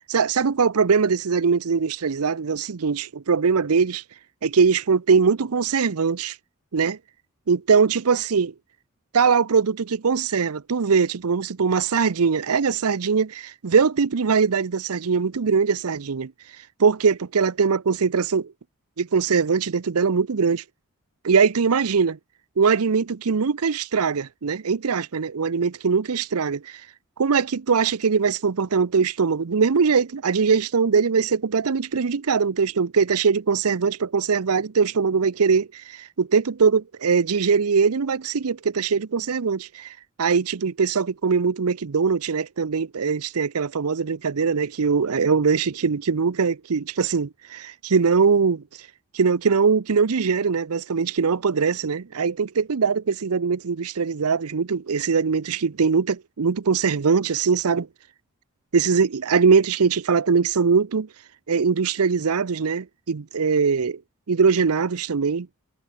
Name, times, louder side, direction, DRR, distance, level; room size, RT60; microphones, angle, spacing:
voice 1, 0.1-6.4 6.7-7.0 7.5-8.5 9.1-18.5 19.0-20.6 21.2-22.2 22.6-57.9 58.7-64.0 64.3-65.5, right 5 dB, 80° right, 0.6 m, -22 dB
head